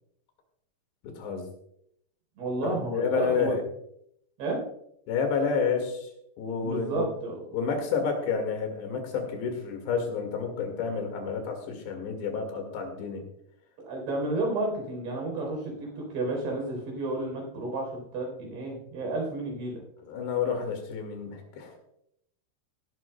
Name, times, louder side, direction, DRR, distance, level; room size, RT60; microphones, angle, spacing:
voice 1, 1.0-1.5 2.6-3.6 5.1-7.1 7.5-13.2 20.0-21.8, left 5 dB, 85° left, 4 dB, 4.2 m, -30 dB
voice 2, 2.4-3.6 4.4-4.6 6.6-7.4 13.8-19.8, right 2 dB, 75° right, 0 dB, 6.1 m, -31 dB
18.0 x 12.0 x 2.3 m, 0.73 s
omnidirectional pair, 4.9 m